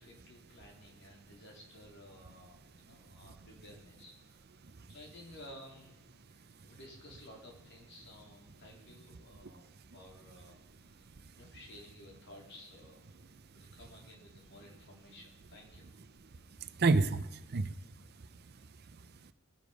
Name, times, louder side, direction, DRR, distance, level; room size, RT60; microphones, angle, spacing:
voice 1, 0.0-4.5 4.9-6.0 6.3-11.1 11.3-13.0 13.5-15.9, left 1 dB, 55° left, 0 dB, 3.8 m, -55 dB
voice 2, 16.6-18.0 18.9-19.3, right 3 dB, 50° right, 12 dB, 0.6 m, -31 dB
20.5 x 10.0 x 5.2 m, 1.0 s
head